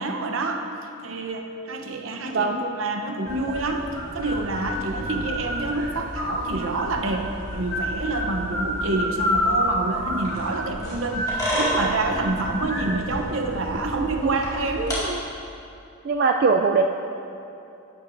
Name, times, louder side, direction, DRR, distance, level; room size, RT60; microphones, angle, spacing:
voice 1, 0.0-3.9 4.1-14.9, right 2 dB, 75° right, 4 dB, 0.8 m, -28 dB
sound 1, 3.3-15.0, equal, 15° left, 2.0 m, -29 dB
voice 2, 14.8-15.2 16.0-16.8, right 4 dB, 50° right, 3 dB, 0.3 m, -22 dB
12.5 x 8.7 x 2.6 m, 2.7 s
head